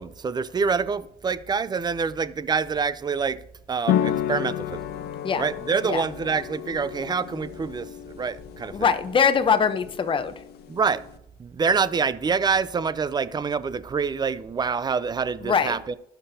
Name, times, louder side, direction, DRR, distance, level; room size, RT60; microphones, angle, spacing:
voice 1, 0.0-3.4 3.7-4.8 5.4-8.9 10.7-11.0 11.4-15.9, right 5 dB, 25° right, 0.5 m, -26 dB
sound 1, 3.9-11.2, left 10 dB, 70° left, 0.6 m, -31 dB
voice 2, 8.7-10.3 15.4-15.8, left 6 dB, 30° left, 0.7 m, -22 dB
15.0 x 6.0 x 2.7 m
cardioid pair, 110°, 17 cm